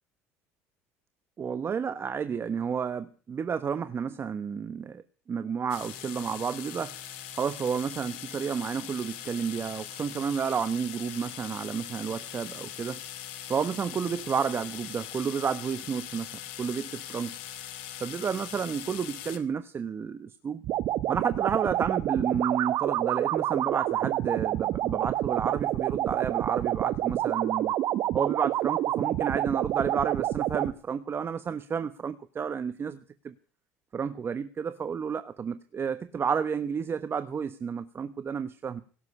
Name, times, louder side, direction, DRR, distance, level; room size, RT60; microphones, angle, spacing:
voice 1, 1.4-5.0 5.3-7.0 7.3-13.0 13.5-16.3 16.6-17.3 18.0-20.6 21.1-27.7 28.1-33.3 33.9-38.8, right 6 dB, 35° right, 1.1 m, -31 dB
sound 1, 5.7-19.4, left 11 dB, 80° left, 2.3 m, -41 dB
sound 2, 20.6-30.7, right 13 dB, 60° right, 1.1 m, -28 dB
17.5 x 7.8 x 9.8 m
supercardioid pair, 80°, 7 cm